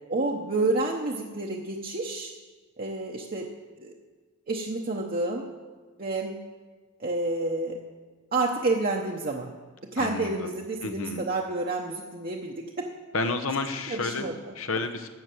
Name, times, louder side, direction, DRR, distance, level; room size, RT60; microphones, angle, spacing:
voice 1, 0.1-2.3 2.8-3.5 3.8-3.9 4.5-5.5 6.0-6.4 7.0-7.8 8.3-9.5 9.9-12.9 13.9-14.5, right 2 dB, 45° right, -1 dB, 0.9 m, -29 dB
voice 2, 10.0-10.5 10.8-11.2 13.1-14.3 14.5-15.1, left 3 dB, 75° left, 7 dB, 1.0 m, -30 dB
12.0 x 8.1 x 7.6 m, 1.4 s
head